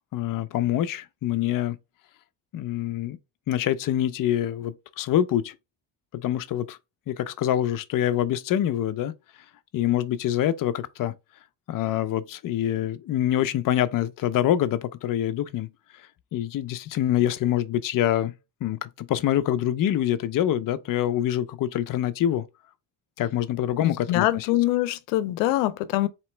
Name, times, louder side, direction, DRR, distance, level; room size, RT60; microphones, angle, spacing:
voice 1, 0.1-1.8 2.5-3.2 3.5-5.5 6.1-6.8 7.1-9.1 9.7-11.1 11.7-15.7 16.0-18.3 18.6-22.5 23.2-24.5, left 11 dB, 45° left, 0.6 m, -25 dB
voice 2, 23.8-26.1, left 15 dB, 90° left, 0.6 m, -24 dB
4.3 x 2.9 x 3.3 m
supercardioid pair, 90°, 48 cm